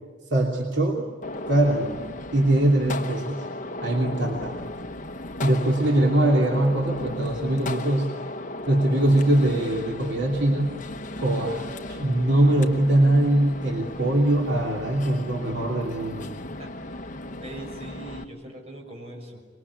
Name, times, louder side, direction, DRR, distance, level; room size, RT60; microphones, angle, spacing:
voice 1, 0.3-1.0 1.5-2.0 2.3-3.4 3.8-4.5 5.4-8.1 8.7-10.7 11.1-16.3, right 1 dB, 65° right, -1 dB, 3.0 m, -22 dB
Gunshot gunfire, 1.2-18.2, left 2 dB, 45° left, 1.1 m, -36 dB
voice 2, 5.6-6.0 16.6-19.4, right 2 dB, 35° right, 1 dB, 6.5 m, -42 dB
25.5 x 22.5 x 9.8 m, 1.4 s
head